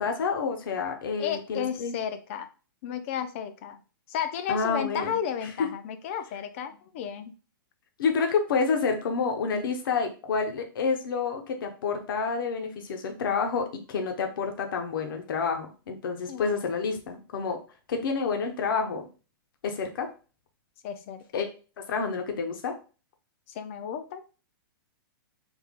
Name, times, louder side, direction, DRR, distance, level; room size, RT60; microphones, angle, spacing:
voice 1, 0.0-1.9 4.5-5.1 5.4-5.5 8.0-17.6 17.9-19.1 19.6-20.1 21.3-21.5 21.9-22.8, left 5 dB, 65° left, 4 dB, 0.7 m, -29 dB
voice 2, 1.2-2.5 2.8-3.8 4.1-7.3 16.3-16.6 20.8-21.2 23.5-24.2, left 8 dB, 35° left, 10 dB, 0.4 m, -33 dB
3.4 x 2.2 x 3.5 m, 0.35 s
hypercardioid pair, 165°, 12 cm